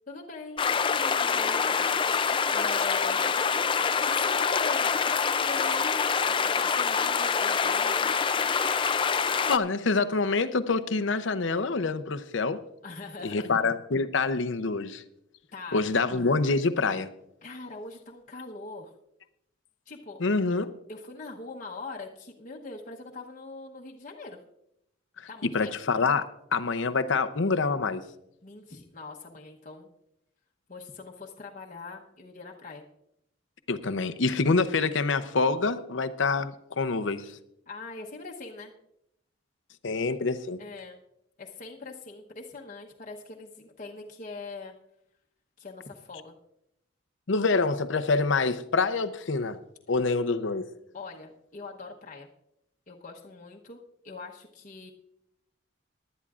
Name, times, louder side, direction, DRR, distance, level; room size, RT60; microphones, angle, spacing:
voice 1, 0.1-1.6 2.5-3.3 4.0-4.9 5.2-6.1 6.7-8.2 12.8-13.6 15.5-15.8 17.4-18.9 19.9-20.2 20.9-24.4 25.3-25.7 28.4-29.9 30.7-32.8 37.7-38.7 40.6-41.0 41.4-44.7 45.6-46.4 50.9-52.3 52.9-54.9, left 3 dB, 40° left, -1 dB, 1.0 m, -42 dB
sound 1, 0.6-9.6, left 6 dB, 25° left, 0.4 m, -25 dB
voice 2, 9.5-12.6 13.2-15.0 15.7-17.1 20.2-20.7 25.4-28.0 33.7-37.3 39.8-40.6 47.3-49.6 49.9-50.7, left 4 dB, 75° left, 11 dB, 0.7 m, -26 dB
19.0 x 11.5 x 2.5 m, 0.79 s
head